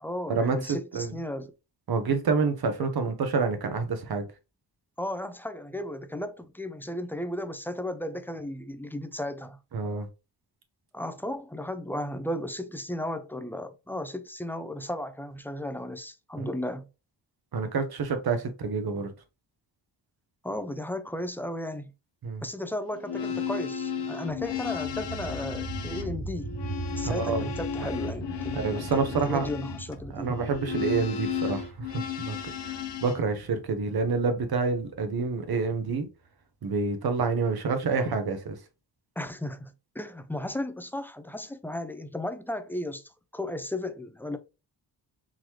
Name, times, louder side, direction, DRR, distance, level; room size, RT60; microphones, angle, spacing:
voice 1, 0.0-1.5 5.0-9.6 10.9-16.9 20.4-21.9 22.4-26.6 26.9-30.4 39.2-44.4, left 1 dB, 5° left, 0.3 m, -35 dB
voice 2, 1.9-4.2 9.7-10.1 16.4-16.5 17.5-19.1 22.2-22.4 27.0-27.5 28.5-29.5 30.1-32.4 32.6-36.1 36.6-38.6, right 4 dB, 55° right, 0.9 m, -28 dB
sound 1, 22.9-33.2, left 7 dB, 75° left, 0.8 m, -34 dB
sound 2, 24.4-35.8, right 2 dB, 25° right, 1.1 m, -40 dB
3.8 x 3.0 x 3.0 m
cardioid pair, 95°, 43 cm